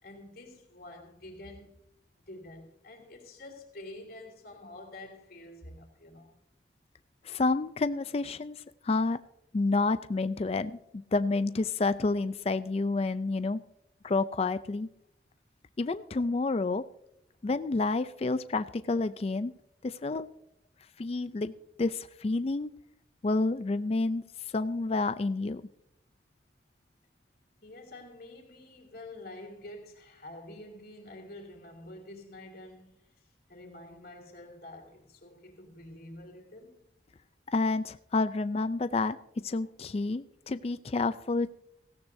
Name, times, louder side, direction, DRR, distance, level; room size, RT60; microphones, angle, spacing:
voice 1, 0.0-1.7 2.2-6.3 27.6-33.2 33.5-36.8 39.6-39.7, left 1 dB, 55° left, 2.9 m, -48 dB
voice 2, 7.2-8.6 8.8-9.2 9.5-13.6 14.0-14.9 15.8-16.8 17.4-19.5 19.8-20.3 21.0-21.5 21.8-22.7 23.2-24.2 24.5-25.6 37.5-39.2 39.4-41.5, left 3 dB, 35° left, 0.4 m, -29 dB
17.5 x 16.0 x 2.7 m
head